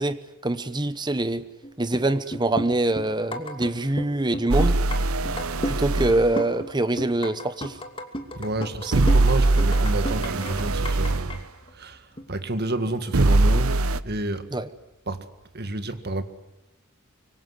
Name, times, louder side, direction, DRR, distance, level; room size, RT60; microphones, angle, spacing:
voice 1, 0.0-1.5 1.8-4.8 5.6-7.8 8.9-9.0 14.5-14.7, right 2 dB, 20° right, 0.9 m, -24 dB
sound 1, 1.6-2.1 2.3-3.7 4.0-5.0 5.2-6.1 6.4-6.7 7.0-11.4 11.7-11.8 12.2-12.4 12.9-13.6 13.9-14.0, equal, 25° left, 2.6 m, -33 dB
sound 2, 4.5-6.2 8.9-11.3 13.1-14.0, right 2 dB, 75° right, 0.9 m, -21 dB
voice 2, 8.3-11.5 11.7-14.5 15.1-15.3 15.5-16.2, right 2 dB, 50° right, 1.9 m, -30 dB
24.5 x 24.5 x 9.6 m
head